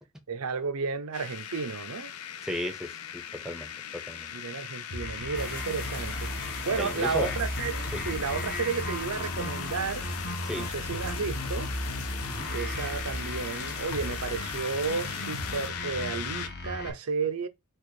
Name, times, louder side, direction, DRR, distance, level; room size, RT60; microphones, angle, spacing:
voice 1, 0.3-2.1 4.3-10.1 10.5-11.7 12.5-17.5, right 5 dB, 75° right, 0.6 m, -32 dB
sound 1, 1.1-16.5, left 9 dB, 90° left, 0.6 m, -40 dB
voice 2, 2.4-4.3 6.8-7.3 7.9-8.0 10.4-10.7 12.3-12.5, equal, ahead, 0.7 m, -35 dB
sound 2, 4.9-16.9, left 1 dB, 50° left, 1.2 m, -36 dB
sound 3, 5.3-15.7, left 5 dB, 70° left, 1.1 m, -41 dB
4.6 x 2.5 x 4.6 m
head